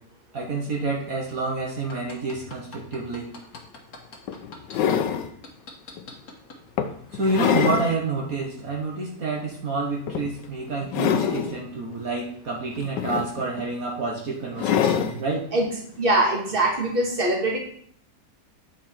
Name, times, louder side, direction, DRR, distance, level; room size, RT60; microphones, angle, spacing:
voice 1, 0.3-3.3 7.1-15.5, right 3 dB, 55° right, -1 dB, 1.7 m, -28 dB
sound 1, 1.7-4.9 5.4-6.6 7.1-7.2, left 3 dB, 55° left, 1.7 m, -42 dB
sound 2, 3.5-3.6 4.3-5.3 6.0-6.1 6.8-7.9 8.4-8.5 10.1-10.5 10.8-11.6 12.7-13.6 14.6-15.2 16.6-16.7, left 8 dB, 75° left, 1.3 m, -25 dB
voice 2, 16.0-17.6, right 1 dB, 30° right, 0 dB, 1.8 m, -22 dB
8.8 x 5.1 x 4.4 m, 0.63 s
omnidirectional pair, 1.9 m